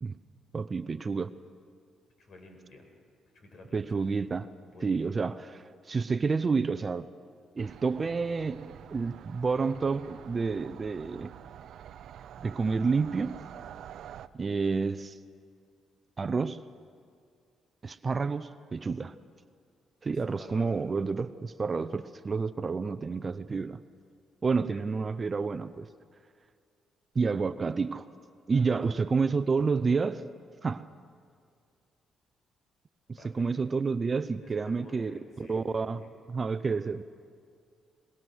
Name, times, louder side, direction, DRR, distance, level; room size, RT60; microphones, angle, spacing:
voice 1, 0.5-1.3 3.7-4.5 4.8-7.1 7.6-11.3 12.4-13.4 14.3-15.2 16.2-16.6 17.8-19.2 20.0-23.8 24.4-25.9 27.1-28.1 28.5-30.3 30.6-30.9 33.2-35.1 35.5-36.0 36.3-37.0, right 4 dB, 35° right, 13 dB, 0.7 m, -29 dB
voice 2, 2.2-2.9 3.3-3.9 4.7-5.2 20.1-20.7 24.7-24.9 28.5-29.1 33.2-33.5 34.4-36.1, left 2 dB, 55° left, 2 dB, 6.3 m, -51 dB
sound 1, 7.6-14.3, right 10 dB, 70° right, 0.6 m, -47 dB
23.5 x 21.5 x 6.3 m, 2.2 s
cardioid pair, 90°, 0 cm